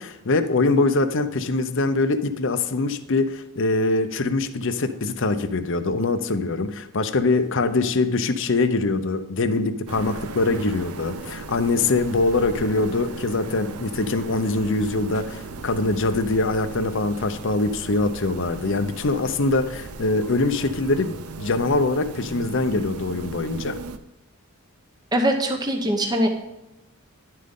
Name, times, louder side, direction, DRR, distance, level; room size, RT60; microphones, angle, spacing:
voice 1, 0.0-23.8, left 3 dB, 60° left, 11 dB, 0.7 m, -23 dB
sound 1, 9.9-24.0, right 4 dB, 90° right, 0.7 m, -37 dB
voice 2, 25.1-26.3, right 1 dB, 20° right, 3 dB, 0.9 m, -22 dB
11.0 x 7.7 x 3.7 m, 0.95 s
head